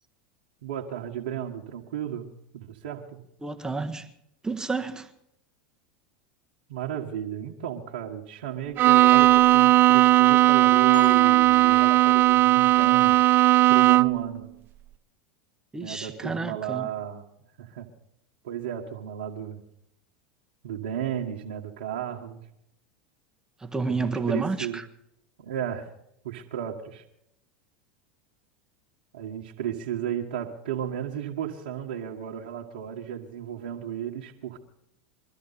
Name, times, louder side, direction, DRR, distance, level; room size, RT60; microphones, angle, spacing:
voice 1, 0.6-2.3 2.5-3.2 6.7-13.2 13.7-14.5 15.8-17.2 17.6-17.9 18.4-19.6 20.6-22.4 23.8-24.8 25.4-25.8 26.2-27.0 29.1-34.6, right 9 dB, 75° right, 1.6 m, -34 dB
voice 2, 3.4-4.1 4.4-5.1 15.7-16.9 23.6-24.9, right 4 dB, 10° right, 1.3 m, -30 dB
Bowed string instrument, 8.8-14.3, right 16 dB, 40° right, 0.5 m, -17 dB
sound 1, 10.9-12.4, right 2 dB, 90° left, 7.9 m, -39 dB
23.5 x 13.0 x 4.2 m
hypercardioid pair, 90°, 5 cm